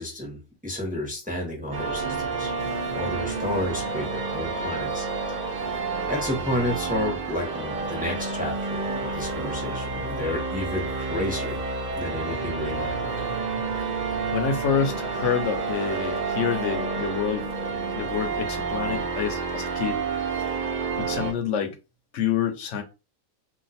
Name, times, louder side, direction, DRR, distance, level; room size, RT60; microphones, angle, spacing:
voice 1, 0.0-2.5 2.9-5.1 6.1-11.6 11.9-13.1, left 1 dB, 5° right, 0.8 m, -31 dB
sound 1, 1.7-21.3, right 4 dB, 65° right, 0.4 m, -29 dB
voice 2, 14.3-17.5 17.9-20.0 21.0-21.8 22.1-22.8, left 7 dB, 60° left, 0.9 m, -27 dB
2.5 x 2.4 x 4.1 m
omnidirectional pair, 1.5 m